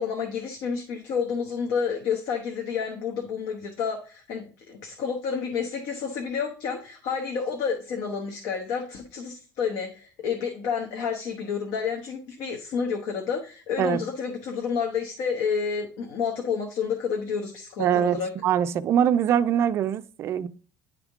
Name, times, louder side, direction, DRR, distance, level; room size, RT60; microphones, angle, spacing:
voice 1, 0.0-18.3, left 6 dB, 70° left, 1.1 m, -30 dB
voice 2, 17.8-20.5, right 9 dB, 40° right, 0.4 m, -23 dB
10.0 x 3.6 x 3.5 m
cardioid pair, 170°, 7 cm